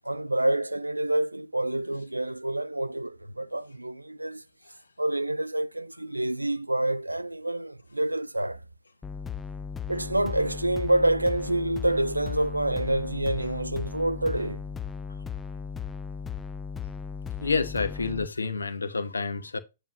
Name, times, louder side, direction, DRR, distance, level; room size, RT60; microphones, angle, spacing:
voice 1, 0.0-4.4 5.0-8.6 9.9-14.6, right 1 dB, 85° right, 0.5 m, -27 dB
sound 1, 9.0-18.3, left 6 dB, 10° left, 0.4 m, -36 dB
voice 2, 17.4-19.6, left 4 dB, 70° left, 1.3 m, -29 dB
9.2 x 3.3 x 5.6 m
figure-of-eight pair, 115°, 0 cm